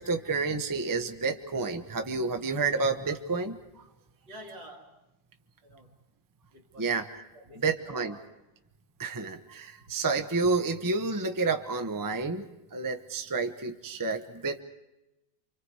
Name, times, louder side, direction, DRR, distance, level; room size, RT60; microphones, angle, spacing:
voice 1, 0.0-3.6 6.8-7.1 7.6-8.2 9.0-14.6, right 4 dB, 15° right, 6 dB, 0.7 m, -30 dB
voice 2, 4.3-5.0 5.6-6.0 6.5-6.9 7.3-8.3 9.8-9.9, equal, 75° right, 0 dB, 3.3 m, -48 dB
29.5 x 25.0 x 4.8 m, 0.94 s
omnidirectional pair, 2.0 m